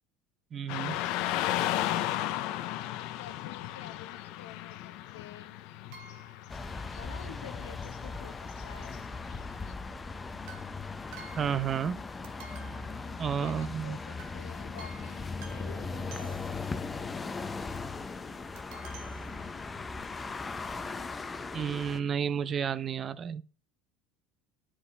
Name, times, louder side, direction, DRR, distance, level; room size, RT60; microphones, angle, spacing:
voice 1, 0.5-1.0 11.4-12.0 13.2-14.0 21.5-23.4, right 7 dB, 35° right, 0.5 m, -31 dB
Car passing by / Traffic noise roadway noise, 0.7-9.7, left 13 dB, 65° left, 0.6 m, -35 dB
voice 2, 3.2-5.6 7.0-9.0 13.4-16.5, left 10 dB, 90° left, 0.9 m, -50 dB
sound 1, 5.9-6.7 10.4-12.0 12.2-13.7 14.2-14.4 14.8-16.8 18.6-20.0 20.7-20.8 21.0-21.1, right 4 dB, 70° right, 1.3 m, -52 dB
sound 2, 6.5-22.0, left 4 dB, 20° left, 0.7 m, -38 dB
8.9 x 5.0 x 3.3 m
supercardioid pair, 95°, 0 cm